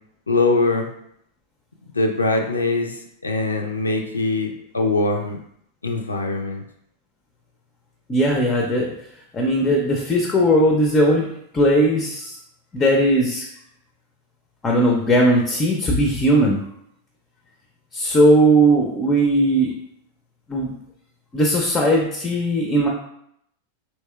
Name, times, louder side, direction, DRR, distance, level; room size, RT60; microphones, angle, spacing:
voice 1, 0.3-0.9 1.9-5.4 5.8-6.6, left 3 dB, 80° left, 2 dB, 0.4 m, -22 dB
voice 2, 8.1-8.9 9.3-11.3 11.5-12.4 12.7-13.4 14.6-16.6 17.9-19.7 20.5-20.7 21.3-22.9, right 1 dB, 20° left, 0 dB, 0.5 m, -18 dB
3.4 x 2.9 x 2.2 m, 0.72 s
figure-of-eight pair, 90°, 0 cm